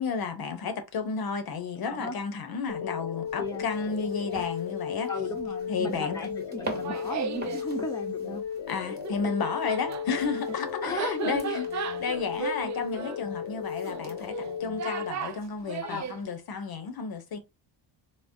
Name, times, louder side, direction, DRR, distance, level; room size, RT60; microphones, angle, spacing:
voice 1, 0.0-5.1 5.7-6.3 8.7-11.7 12.0-17.4, left 5 dB, 50° left, 0.7 m, -32 dB
voice 2, 1.8-2.2 3.4-3.6 5.1-8.4 10.8-11.6 15.8-16.1, left 2 dB, 10° left, 0.6 m, -35 dB
sound 1, 2.7-15.1, left 7 dB, 85° left, 0.8 m, -35 dB
sound 2, 3.3-14.6, right 2 dB, 20° right, 1.0 m, -45 dB
Laughter, 6.6-7.7 8.9-16.2, right 8 dB, 40° right, 0.4 m, -36 dB
3.6 x 2.0 x 2.5 m
cardioid pair, 105°, 46 cm